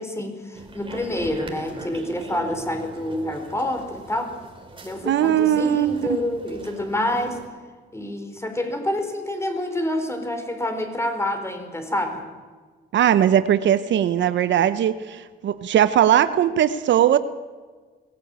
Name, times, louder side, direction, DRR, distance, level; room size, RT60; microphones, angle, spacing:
voice 1, 0.0-4.3 4.8-7.4 7.9-12.3, left 1 dB, 15° left, 6 dB, 4.2 m, -27 dB
sound 1, 0.5-7.5, right 2 dB, 25° right, 3.6 m, -41 dB
voice 2, 5.0-6.2 12.9-17.2, right 10 dB, 65° right, 13 dB, 0.9 m, -19 dB
22.0 x 16.0 x 9.0 m, 1.4 s
cardioid pair, 90°, 20 cm